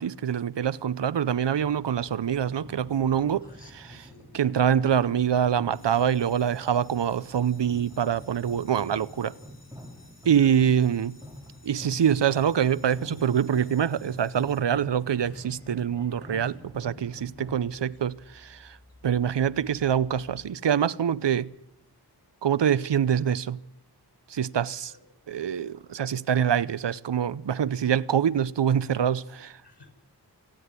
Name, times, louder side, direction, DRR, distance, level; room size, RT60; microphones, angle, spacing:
voice 1, 0.0-3.4 4.3-9.3 10.2-11.2 11.6-18.8 19.0-21.5 22.4-23.6 24.3-24.9 25.3-29.6, right 8 dB, 85° right, 0.7 m, -25 dB
sound 1, 1.5-17.6, equal, 10° right, 5.9 m, -46 dB
voice 2, 3.4-4.3 10.3-10.6 24.9-25.1 29.6-29.9, left 3 dB, 75° left, 5.3 m, -52 dB
sound 2, 5.7-14.6, left 3 dB, 55° left, 5.8 m, -57 dB
sound 3, 15.2-20.5, left 1 dB, 35° left, 4.9 m, -57 dB
27.0 x 10.0 x 9.5 m
wide cardioid pair, 45°, 41 cm